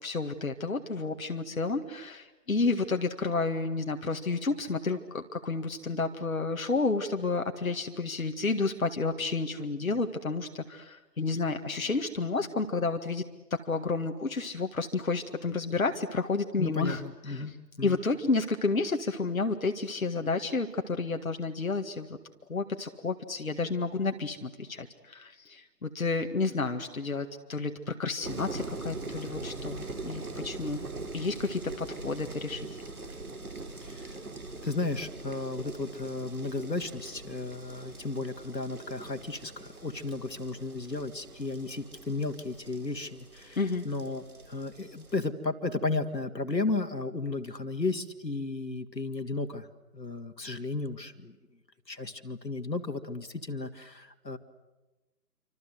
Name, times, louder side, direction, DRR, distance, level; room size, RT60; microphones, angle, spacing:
voice 1, 0.0-13.2 13.5-17.0 17.3-17.5 17.8-22.1 22.5-30.9 31.1-32.6 43.6-43.8, left 3 dB, 55° left, 5 dB, 1.9 m, -31 dB
voice 2, 16.6-18.0 33.9-34.1 34.6-49.7 49.9-51.3 51.9-54.4, left 3 dB, 80° left, 7 dB, 2.5 m, -34 dB
sound 1, 28.2-45.3, right 3 dB, 60° right, 3.7 m, -42 dB
28.0 x 25.5 x 8.0 m, 1.1 s
figure-of-eight pair, 155°, 49 cm